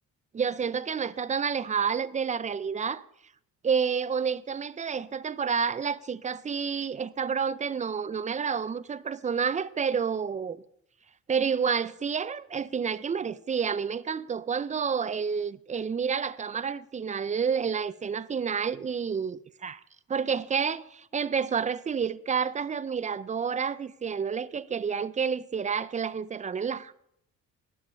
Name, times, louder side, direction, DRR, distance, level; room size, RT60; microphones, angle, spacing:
voice 1, 0.3-3.0 3.6-10.6 11.3-19.7 20.1-26.9, right 6 dB, 25° right, 0.4 m, -29 dB
10.0 x 6.1 x 7.3 m
cardioid pair, 90°, 30 cm